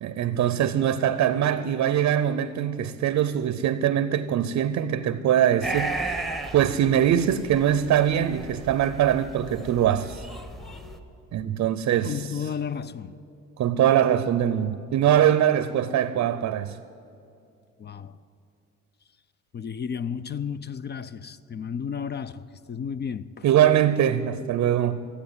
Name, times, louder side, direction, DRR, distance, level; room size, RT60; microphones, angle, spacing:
voice 1, 0.0-6.3 6.5-10.2 11.3-12.1 13.6-16.8 23.4-25.1, right 10 dB, 65° right, 0.6 m, -22 dB
sound 1, 5.6-11.0, right 3 dB, ahead, 1.0 m, -35 dB
voice 2, 12.0-13.2 17.8-18.2 19.5-23.5, left 7 dB, 35° left, 0.4 m, -33 dB
14.5 x 8.5 x 9.4 m
cardioid pair, 90°, 30 cm